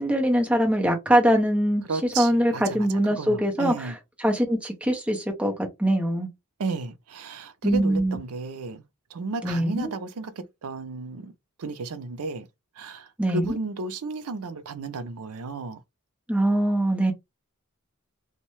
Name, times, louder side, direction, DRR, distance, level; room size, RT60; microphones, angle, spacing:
voice 1, 0.0-1.8 2.2-3.9 4.2-6.3 7.6-8.2 9.4-9.9 13.2-13.5 16.3-17.1, right 1 dB, 5° right, 0.7 m, -23 dB
voice 2, 1.9-3.9 6.6-8.8 9.1-11.3 11.6-12.5 12.8-15.8, right 3 dB, 80° right, 0.5 m, -33 dB
2.6 x 2.1 x 3.0 m
head